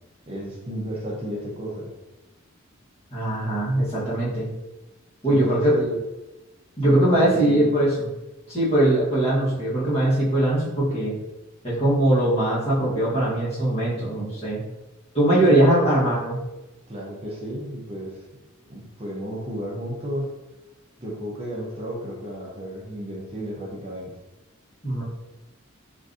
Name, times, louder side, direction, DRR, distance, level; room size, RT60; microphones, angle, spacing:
voice 1, 0.3-1.9 5.2-6.0 6.8-7.7 15.4-15.9 16.9-18.2 18.7-20.3 21.0-24.1, equal, 30° right, -4 dB, 0.6 m, -33 dB
voice 2, 3.1-4.5 5.2-5.9 6.8-8.1 8.5-11.1 11.6-14.6 15.1-16.4 24.8-25.0, right 1 dB, 30° left, -8 dB, 1.1 m, -21 dB
3.6 x 2.6 x 2.5 m, 1.0 s
head